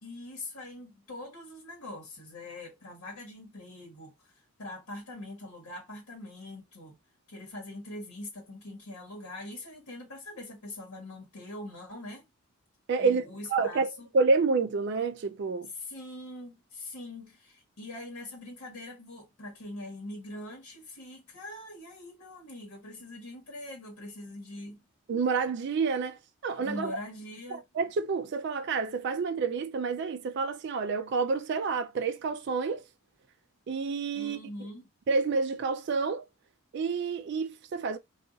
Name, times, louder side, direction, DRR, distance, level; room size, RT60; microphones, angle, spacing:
voice 1, 0.0-4.3 4.6-7.0 7.3-12.2 13.0-14.1 15.8-24.8 26.6-27.6 34.1-34.9, left 1 dB, 80° left, 1.1 m, -43 dB
voice 2, 12.9-13.2 13.5-15.7 25.1-27.0 27.5-32.8 33.7-34.4 35.1-36.2 36.7-38.0, right 4 dB, 50° right, 0.3 m, -29 dB
2.4 x 2.4 x 3.8 m
head